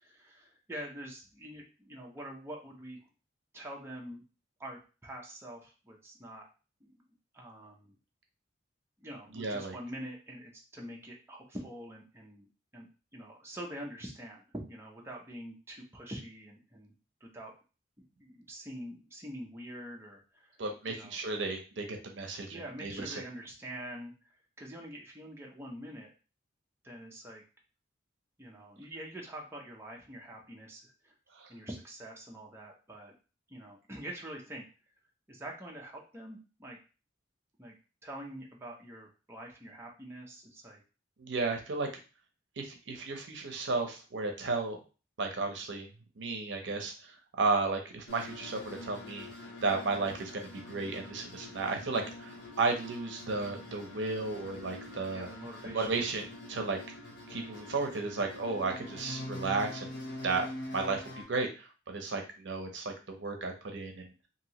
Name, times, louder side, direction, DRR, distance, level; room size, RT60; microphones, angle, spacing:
voice 1, 0.0-3.0 3.5-4.2 4.6-6.5 6.8-7.0 7.3-7.9 9.0-12.5 12.7-16.9 17.2-17.5 18.2-20.5 20.9-21.2 22.5-24.1 24.6-26.1 26.8-27.4 28.4-31.1 31.5-33.1 33.5-34.7 35.3-36.8 37.6-37.8 38.0-40.8 55.1-56.3 57.3-57.5, right 1 dB, 15° right, -2 dB, 0.6 m, -45 dB
voice 2, 9.3-9.7 20.6-23.1 31.3-31.5 41.2-41.9 42.6-44.8 45.2-45.9 46.2-49.3 49.6-55.3 55.6-56.8 57.3-59.9 60.2-60.5 60.7-64.1, right 3 dB, 70° right, 4 dB, 0.6 m, -34 dB
sound 1, 48.1-61.2, left 1 dB, 65° left, 0.9 m, -45 dB
2.9 x 2.7 x 2.9 m, 0.33 s
head